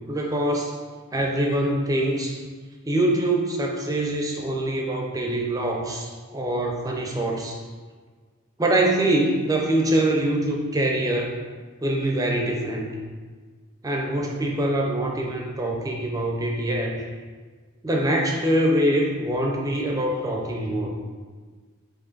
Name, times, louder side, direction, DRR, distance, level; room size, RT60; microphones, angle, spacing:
voice 1, 0.1-0.7 1.1-2.4 2.9-7.6 8.6-11.3 11.8-13.0 13.8-17.1 17.8-20.9, right 1 dB, 15° right, 0 dB, 0.4 m, -24 dB
4.9 x 2.5 x 3.8 m, 1.5 s
head